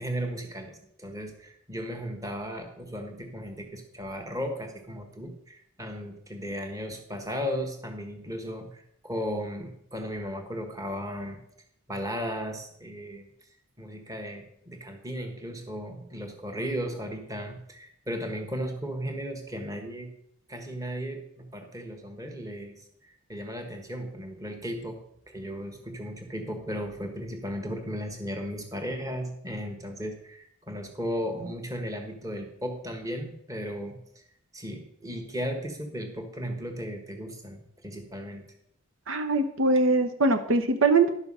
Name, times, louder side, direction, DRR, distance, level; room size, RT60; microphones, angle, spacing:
voice 1, 0.0-11.4 11.9-13.2 13.8-20.1 20.5-34.0 34.5-38.5, equal, 15° right, 5 dB, 1.5 m, -35 dB
voice 2, 39.1-41.1, right 3 dB, 70° right, 7 dB, 0.8 m, -22 dB
11.5 x 6.9 x 5.5 m, 0.72 s
head